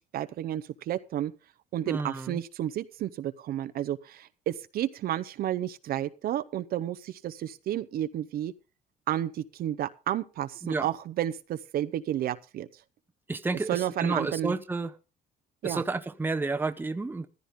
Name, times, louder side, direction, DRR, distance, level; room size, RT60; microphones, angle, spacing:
voice 1, 0.0-1.3 1.7-8.5 9.1-12.7 13.7-14.6 15.6-15.8, right 12 dB, 65° right, 13 dB, 0.8 m, -31 dB
voice 2, 1.9-2.4 10.6-10.9 13.3-14.9 15.6-17.3, right 3 dB, 10° right, 9 dB, 0.8 m, -31 dB
14.5 x 13.5 x 3.7 m, 0.32 s
cardioid pair, 110°, 17 cm